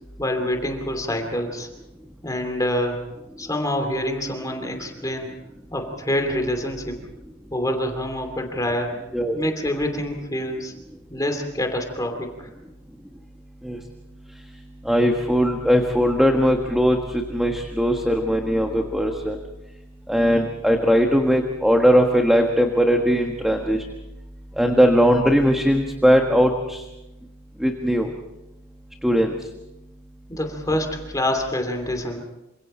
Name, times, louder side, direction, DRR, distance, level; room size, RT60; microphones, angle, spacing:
voice 1, 0.2-1.7 2.2-3.0 3.4-5.3 5.7-7.0 7.5-8.9 9.3-10.7 11.1-12.5 30.3-32.2, left 1 dB, 15° left, 4 dB, 2.8 m, -26 dB
voice 2, 14.8-19.4 20.1-23.8 24.6-26.8 27.6-28.1 29.0-29.3, equal, ahead, 3 dB, 1.4 m, -19 dB
28.0 x 26.0 x 4.4 m, 0.97 s
head